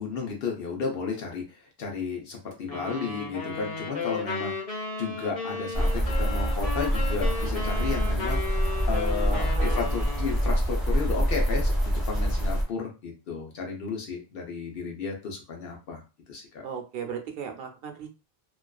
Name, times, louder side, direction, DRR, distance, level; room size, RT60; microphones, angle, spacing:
voice 1, 0.0-4.6 5.0-8.4 8.9-16.0 16.3-16.6, left 5 dB, 65° left, 0 dB, 0.9 m, -33 dB
sound 1, 2.7-10.6, left 3 dB, 40° left, 0.8 m, -35 dB
sound 2, 5.7-12.6, equal, ahead, 1.0 m, -26 dB
voice 2, 9.3-9.9 16.6-18.1, right 7 dB, 70° right, 4 dB, 0.8 m, -36 dB
2.5 x 2.3 x 2.3 m, 0.31 s
omnidirectional pair, 1.0 m